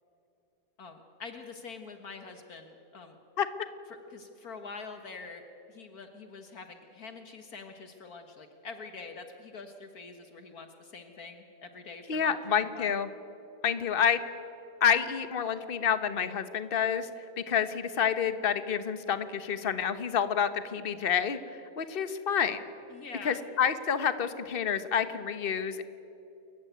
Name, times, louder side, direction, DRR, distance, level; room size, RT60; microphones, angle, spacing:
voice 1, 0.8-3.2 4.1-5.4 5.7-13.0 21.8-22.0 22.9-23.4, left 4 dB, 65° left, 6 dB, 1.9 m, -45 dB
voice 2, 12.1-13.1 13.6-14.2 14.8-17.1 17.4-22.6 23.2-25.8, left 7 dB, 40° left, 11 dB, 1.2 m, -28 dB
28.5 x 15.0 x 9.3 m, 2.9 s
omnidirectional pair, 1.7 m